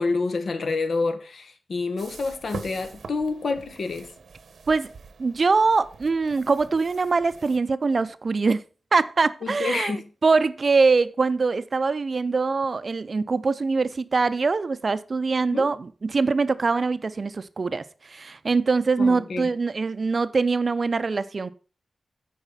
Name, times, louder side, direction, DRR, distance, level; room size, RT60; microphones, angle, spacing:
voice 1, 0.0-4.1 9.4-10.1 15.5-15.7 19.0-19.5, left 3 dB, 65° left, 1.1 m, -28 dB
sound 1, 2.0-7.6, right 5 dB, 75° right, 0.9 m, -43 dB
voice 2, 5.2-8.6 8.9-21.5, right 4 dB, 45° right, 0.5 m, -23 dB
9.0 x 5.0 x 5.6 m
wide cardioid pair, 130°, 0 cm